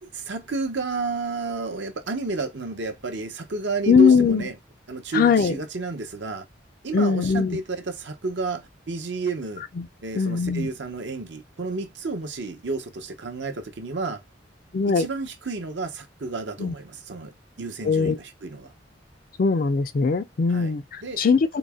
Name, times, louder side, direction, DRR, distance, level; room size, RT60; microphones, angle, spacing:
voice 1, 0.0-4.6 4.9-6.5 6.8-9.6 10.0-14.2 14.9-18.7 20.5-21.2, right 3 dB, 70° right, 0.8 m, -31 dB
voice 2, 3.9-4.4 5.1-5.5 6.9-7.6 9.8-9.9 10.1-10.7 14.7-15.1 16.6-16.7 17.8-18.2 19.4-21.6, left 5 dB, 50° left, 0.4 m, -20 dB
3.9 x 2.0 x 3.5 m
head